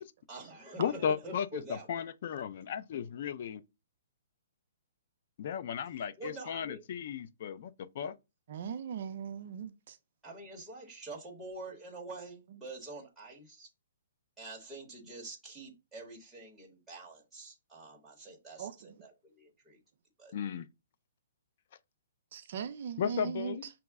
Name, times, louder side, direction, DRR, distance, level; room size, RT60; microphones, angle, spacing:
voice 1, 0.3-2.0 6.2-6.8 10.2-13.7 14.4-19.8 20.2-20.3, right 2 dB, 5° right, 0.9 m, -46 dB
voice 2, 0.8-3.6 5.4-8.2 20.3-20.7 23.0-23.7, left 8 dB, 40° left, 0.3 m, -35 dB
voice 3, 8.5-10.0 18.6-18.7 22.3-23.6, right 7 dB, 45° right, 0.4 m, -39 dB
5.6 x 2.0 x 3.4 m
hypercardioid pair, 175°, 0 cm